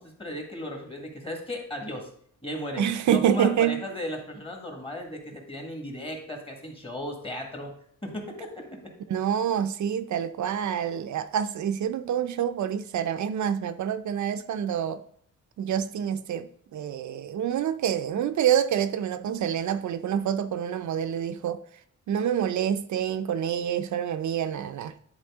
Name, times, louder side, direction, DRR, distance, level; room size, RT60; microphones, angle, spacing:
voice 1, 0.0-2.1 2.4-7.7 8.0-8.6, left 1 dB, 20° left, 1.5 m, -36 dB
voice 2, 2.8-3.8 9.1-15.0 15.6-21.6 22.1-24.9, right 9 dB, 75° right, 0.5 m, -27 dB
10.5 x 4.1 x 3.5 m
wide cardioid pair, 150°, 29 cm